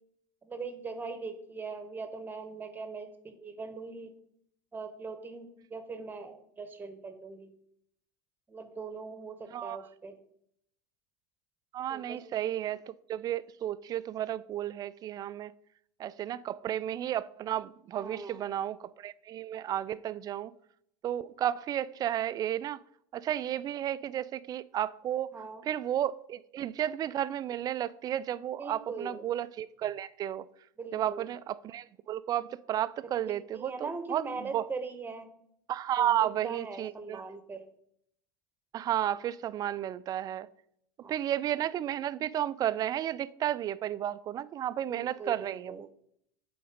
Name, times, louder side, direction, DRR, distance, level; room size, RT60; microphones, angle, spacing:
voice 1, 0.4-4.1 4.7-7.5 8.5-10.2 11.9-12.2 18.0-18.4 25.3-25.6 28.6-29.3 30.8-31.4 33.3-35.3 36.0-37.7 41.0-41.1 44.9-45.8, right 4 dB, 15° right, 1.1 m, -41 dB
voice 2, 11.7-15.5 16.0-20.5 21.0-22.8 23.1-25.3 25.6-30.5 30.9-34.7 35.7-37.2 38.7-40.5 41.1-45.9, right 11 dB, 35° right, 0.3 m, -33 dB
8.4 x 3.9 x 5.1 m
hypercardioid pair, 80°, 11 cm